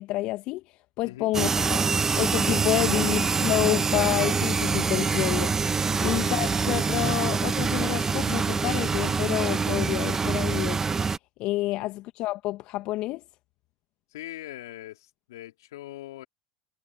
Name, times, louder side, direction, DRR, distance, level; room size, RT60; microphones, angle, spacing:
voice 1, 0.0-1.8 2.2-5.7 6.0-10.8 11.4-13.2, left 18 dB, 55° left, 1.5 m, -29 dB
sound 1, 1.3-11.2, right 5 dB, 20° right, 0.9 m, -25 dB
voice 2, 14.1-16.3, left 15 dB, 75° left, 3.0 m, -42 dB
hypercardioid pair, 85°, 2 cm